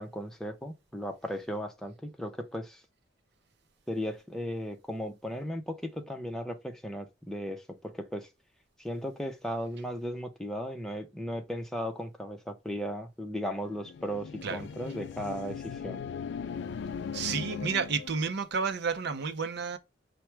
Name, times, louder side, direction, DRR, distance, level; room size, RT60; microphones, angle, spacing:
voice 1, 0.0-2.8 3.9-8.3 8.8-16.0, equal, ahead, 0.6 m, -36 dB
sound 1, 13.6-18.3, left 6 dB, 65° left, 0.3 m, -39 dB
voice 2, 17.1-19.8, right 5 dB, 60° right, 0.5 m, -31 dB
4.5 x 2.1 x 4.4 m
head